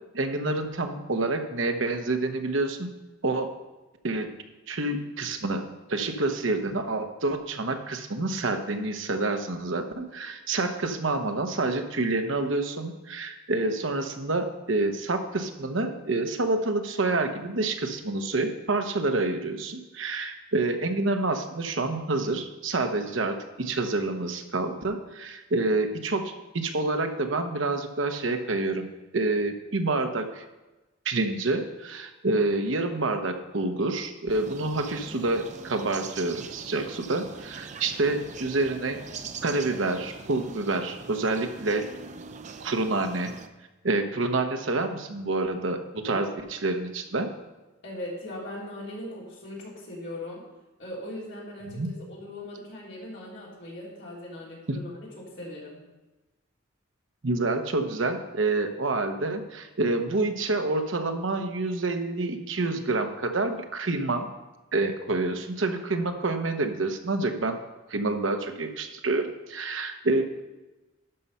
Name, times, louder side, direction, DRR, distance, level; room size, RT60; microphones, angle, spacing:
voice 1, 0.1-2.9 3.2-3.5 4.0-4.3 4.7-28.9 29.1-30.4 31.0-39.0 39.4-41.8 42.6-43.3 43.8-47.3 51.6-51.9 54.7-54.8 57.2-64.3 64.7-67.6 67.9-70.4, right 2 dB, 70° right, 6 dB, 0.9 m, -28 dB
sound 1, 34.3-43.5, right 5 dB, 35° right, 0.5 m, -42 dB
voice 2, 46.0-46.3 47.8-50.4 50.8-55.8, left 1 dB, 60° left, -5 dB, 3.6 m, -39 dB
12.0 x 5.5 x 5.6 m, 1.1 s
head